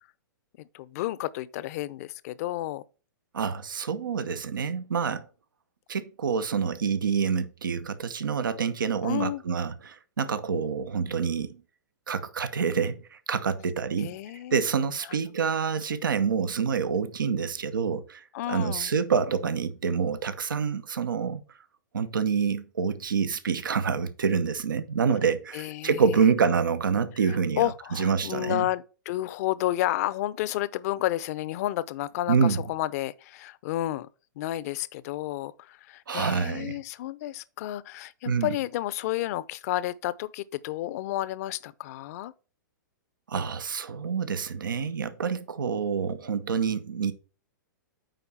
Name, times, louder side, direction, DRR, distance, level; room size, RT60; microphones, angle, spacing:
voice 1, 0.6-2.8 9.0-9.4 14.0-14.6 18.3-18.9 25.5-26.0 27.3-34.1 34.4-42.3, left 15 dB, 50° left, 0.6 m, -31 dB
voice 2, 3.3-5.2 5.9-11.6 12.1-14.2 14.5-21.4 21.9-28.7 32.3-32.6 36.1-36.8 38.2-38.5 43.3-47.1, right 6 dB, 80° right, 0.9 m, -27 dB
9.1 x 3.8 x 5.6 m
hypercardioid pair, 115°, 11 cm